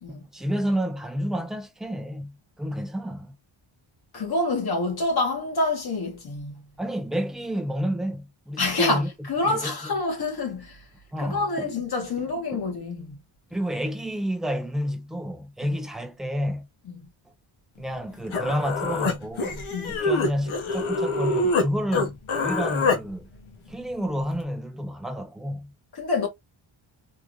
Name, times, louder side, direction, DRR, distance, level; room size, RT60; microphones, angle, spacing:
voice 1, 0.1-3.3 6.8-9.9 11.1-11.7 12.2-12.3 12.5-12.6 13.5-16.7 17.8-23.3 23.7-25.7, equal, ahead, 0.4 m, -30 dB
voice 2, 4.1-6.7 8.6-10.8 11.2-13.2 19.7-20.0 25.9-26.3, left 2 dB, 50° left, 1.4 m, -27 dB
Human voice, 18.0-18.1 18.3-21.7 21.9-23.0, left 3 dB, 75° left, 1.0 m, -25 dB
3.5 x 2.5 x 2.9 m
wide cardioid pair, 130°, 48 cm